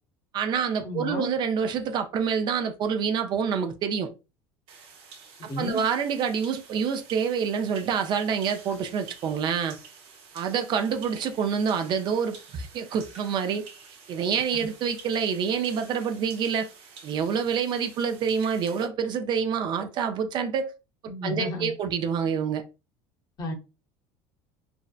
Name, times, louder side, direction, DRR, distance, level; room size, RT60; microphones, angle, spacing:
voice 1, 0.3-4.1 5.4-9.8 10.3-13.6 14.1-16.7 17.0-20.7 21.2-22.6, right 6 dB, 45° right, 0.4 m, -27 dB
voice 2, 0.8-1.3 5.5-5.8 14.5-14.7 21.1-21.7 23.4-23.5, left 2 dB, 40° left, 0.7 m, -32 dB
sound 1, 4.7-18.9, right 5 dB, 60° right, 0.9 m, -49 dB
2.6 x 2.1 x 2.3 m
cardioid pair, 125°, 11 cm